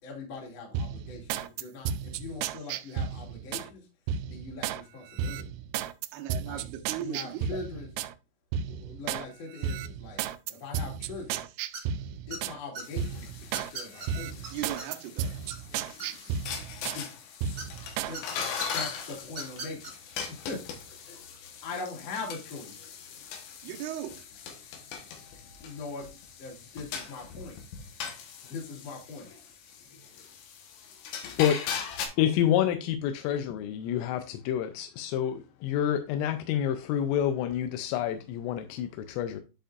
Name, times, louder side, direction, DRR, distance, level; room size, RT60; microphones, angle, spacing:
voice 1, 0.0-5.5 6.4-7.9 8.6-10.2 10.5-11.5 12.3-14.5 15.7-15.9 16.8-17.7 18.0-18.3 18.7-20.0 20.3-21.2 21.6-22.9 25.6-27.6 28.4-29.3, left 4 dB, 40° left, 2.9 m, -42 dB
sound 1, 0.7-3.7 4.1-4.8 5.2-8.1 8.5-9.3 9.6-12.6 13.0-13.7 14.1-17.0 17.4-18.1 18.5-18.8, right 8 dB, 85° right, 3.1 m, -34 dB
voice 2, 6.1-7.6 14.5-15.3 23.6-24.2, right 11 dB, 70° right, 2.8 m, -37 dB
sound 2, 11.7-12.0 12.3-12.8 13.5-14.1 14.4-14.5 14.8-14.9 15.2-16.4 17.6-18.2 18.6-18.7 19.3-19.9, right 3 dB, 50° right, 1.2 m, -39 dB
sound 3, 12.8-32.1, left 6 dB, 70° left, 3.2 m, -40 dB
voice 3, 31.2-31.5 32.2-39.4, left 10 dB, 90° left, 3.3 m, -28 dB
11.0 x 5.2 x 2.5 m
omnidirectional pair, 5.7 m